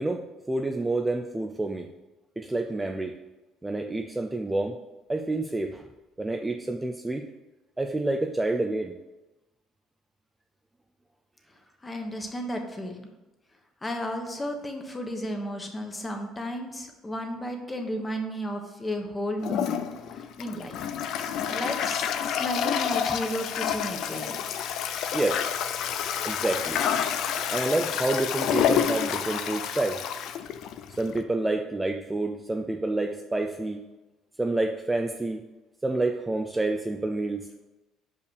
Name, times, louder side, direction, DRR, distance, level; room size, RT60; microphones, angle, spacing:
voice 1, 0.0-1.9 2.4-3.2 3.6-4.8 5.1-5.8 6.2-7.3 7.8-9.0 25.1-25.4 26.2-26.8 27.5-30.0 31.0-33.8 34.4-35.4 35.8-37.5, right 2 dB, 10° right, 4 dB, 0.5 m, -28 dB
voice 2, 11.8-13.1 13.8-19.8 20.1-20.8 21.5-24.4, equal, 20° left, 4 dB, 1.2 m, -33 dB
Toilet flush, 19.4-31.2, left 8 dB, 65° left, 0.5 m, -29 dB
5.5 x 5.0 x 6.5 m, 1.1 s
cardioid pair, 95°, 0 cm